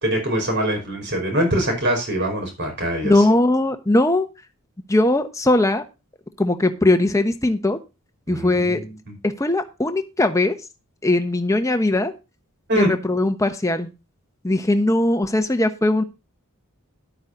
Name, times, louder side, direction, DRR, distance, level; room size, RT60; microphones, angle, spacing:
voice 1, 0.0-3.3 8.3-9.2 12.7-12.9, right 1 dB, 50° right, 3 dB, 5.1 m, -23 dB
voice 2, 3.0-4.3 4.9-5.8 6.4-7.8 8.3-8.8 9.2-10.6 11.0-12.1 12.8-13.9 14.4-16.0, left 2 dB, 15° left, 7 dB, 1.0 m, -19 dB
11.5 x 8.9 x 3.9 m, 0.27 s
head